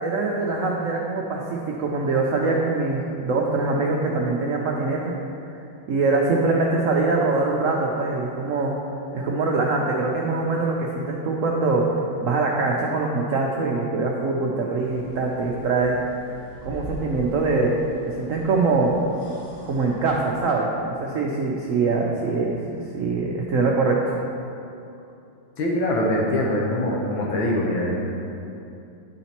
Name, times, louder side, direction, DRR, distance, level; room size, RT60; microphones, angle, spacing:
voice 1, 0.0-5.1 5.9-8.7 9.1-16.0 16.6-17.7 18.2-18.9 19.7-22.6 22.9-24.1, right 3 dB, 85° right, -1 dB, 0.7 m, -23 dB
sound 1, 14.8-20.2, equal, 35° left, 1.6 m, -42 dB
voice 2, 25.6-28.0, left 1 dB, 85° left, -2 dB, 1.6 m, -23 dB
10.0 x 4.1 x 4.3 m, 2.7 s
omnidirectional pair, 2.1 m